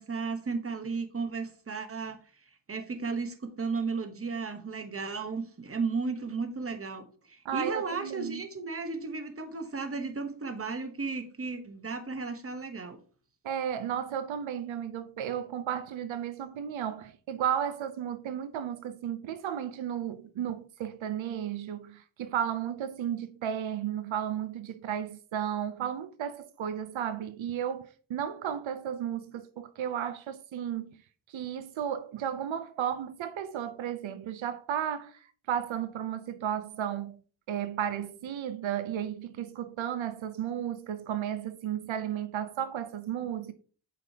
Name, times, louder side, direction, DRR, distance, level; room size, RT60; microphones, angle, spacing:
voice 1, 0.0-2.2 2.7-13.0, right 4 dB, 30° right, 1.1 m, -34 dB
voice 2, 7.4-8.4 13.4-30.9 31.3-37.2 37.5-43.5, right 9 dB, 90° right, 0.7 m, -34 dB
7.7 x 5.3 x 2.8 m
wide cardioid pair, 95°, 45 cm